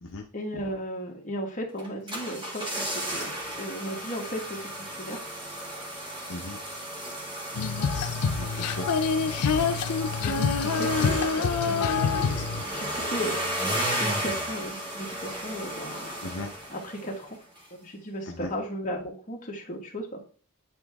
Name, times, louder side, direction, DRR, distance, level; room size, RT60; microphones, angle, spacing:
voice 1, 0.3-5.2 9.4-9.7 10.2-13.7 14.0-16.2 16.7-17.4 17.8-20.2, equal, 35° left, 0 dB, 1.6 m, -36 dB
sound 1, 1.8-17.3 17.6-17.7, right 1 dB, 20° right, 1.8 m, -34 dB
Female singing, 7.5-13.0, left 5 dB, 90° left, 0.6 m, -26 dB
voice 2, 8.4-9.4 16.2-16.5 18.3-18.5, left 2 dB, 60° left, 0 dB, 0.8 m, -38 dB
9.4 x 3.5 x 3.5 m, 0.39 s
head